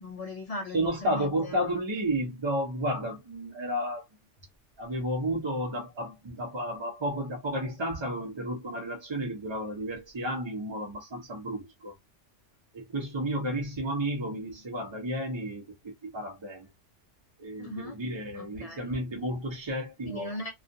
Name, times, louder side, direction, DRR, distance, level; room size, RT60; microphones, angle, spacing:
voice 1, 0.0-1.6 17.6-18.0 18.3-18.9 20.1-20.5, left 2 dB, 70° left, 0.3 m, -39 dB
voice 2, 0.7-4.0 4.8-11.9 12.7-15.6 16.1-16.7 17.4-20.3, equal, 25° right, 0.7 m, -32 dB
2.4 x 2.3 x 2.6 m
omnidirectional pair, 1.3 m